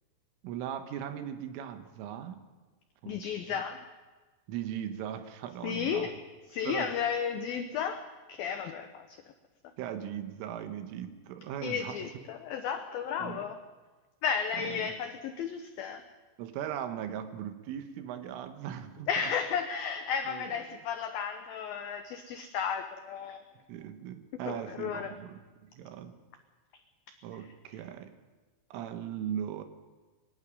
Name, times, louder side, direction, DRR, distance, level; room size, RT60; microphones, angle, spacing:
voice 1, 0.4-2.4 3.0-3.6 4.5-6.1 6.7-7.0 9.8-12.0 13.2-13.5 14.6-14.9 16.4-19.1 20.3-20.5 23.7-26.1 27.2-28.1 28.7-29.6, right 10 dB, 90° right, 8 dB, 3.9 m, -39 dB
voice 2, 3.1-3.8 5.6-6.2 6.5-9.2 11.6-13.6 14.2-16.0 19.1-23.4 24.4-25.1, left 7 dB, 90° left, 7 dB, 2.0 m, -33 dB
22.5 x 12.0 x 9.7 m, 1.3 s
omnidirectional pair, 5.6 m